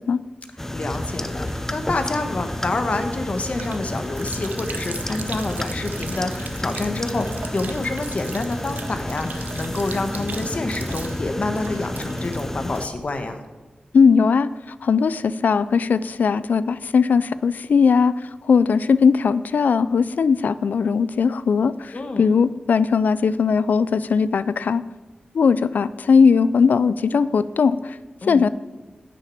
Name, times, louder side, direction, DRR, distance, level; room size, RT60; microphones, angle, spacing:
sound 1, 0.6-12.9, left 1 dB, 15° left, 0.6 m, -30 dB
voice 1, 0.7-13.4 21.9-22.3 28.2-28.5, left 2 dB, 50° left, 6 dB, 1.3 m, -28 dB
Sink (filling or washing), 0.9-13.3, right 4 dB, 75° right, 0.8 m, -39 dB
voice 2, 13.9-14.5 14.8-18.1 18.5-24.8 25.3-28.0 28.3-28.5, left 5 dB, 75° left, 16 dB, 0.3 m, -19 dB
9.4 x 6.6 x 8.5 m, 1.2 s
wide cardioid pair, 75°, 3 cm